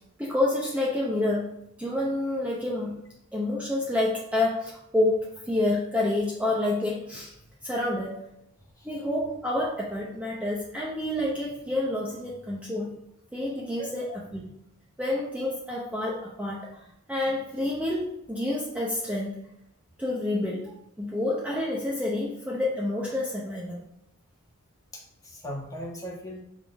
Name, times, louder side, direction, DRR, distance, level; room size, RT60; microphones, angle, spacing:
voice 1, 0.2-1.5 1.8-3.0 3.3-7.3 7.6-8.2 8.8-12.9 13.3-14.5 15.0-19.4 20.0-20.7 21.0-23.8, left 1 dB, 5° right, -4 dB, 0.9 m, -28 dB
voice 2, 13.7-14.2 24.9-26.4, equal, 15° left, -3 dB, 1.5 m, -39 dB
7.4 x 3.7 x 4.8 m, 0.81 s
head